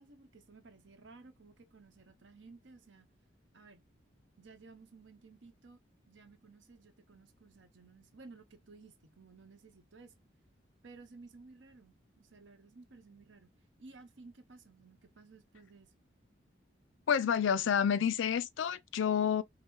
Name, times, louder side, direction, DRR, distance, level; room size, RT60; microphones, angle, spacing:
voice 1, 0.0-3.1 3.5-3.8 4.4-5.8 6.1-10.1 10.8-13.5 13.8-15.9, right 3 dB, 75° right, 0.9 m, -56 dB
voice 2, 17.1-19.4, left 8 dB, 75° left, 0.4 m, -29 dB
5.3 x 2.0 x 3.0 m
head